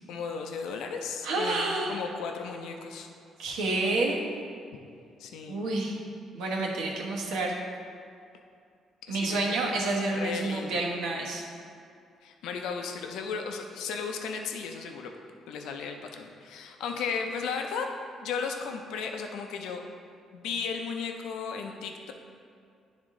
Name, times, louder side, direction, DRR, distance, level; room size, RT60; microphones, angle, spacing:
voice 1, 0.1-3.1 5.2-5.7 9.1-9.8 10.2-10.8 12.2-15.1 15.5-17.9 18.2-19.8 20.3-22.1, left 5 dB, 90° left, 3 dB, 0.6 m, -35 dB
voice 2, 1.2-2.0 3.4-4.2 5.5-6.0 6.3-7.5 9.1-11.4, right 2 dB, 90° right, -2 dB, 1.2 m, -29 dB
10.5 x 3.6 x 3.7 m, 2.4 s
cardioid pair, 145°, 0 cm